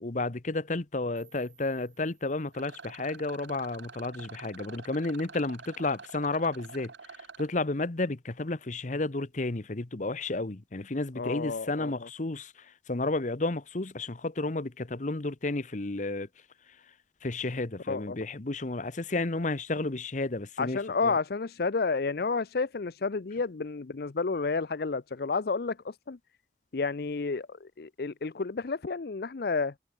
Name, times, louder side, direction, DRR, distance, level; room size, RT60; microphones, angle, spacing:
voice 1, 0.0-6.9 7.4-12.5 12.9-16.3 17.2-21.2, left 2 dB, 45° left, 1.0 m, -32 dB
sound 1, 1.2-4.2, right 9 dB, 25° right, 7.5 m, -65 dB
Rattle, 2.5-7.5, right 5 dB, 90° right, 1.5 m, -48 dB
voice 2, 11.2-11.9 17.9-18.2 20.6-26.2 26.7-29.7, left 4 dB, 60° left, 0.6 m, -31 dB
head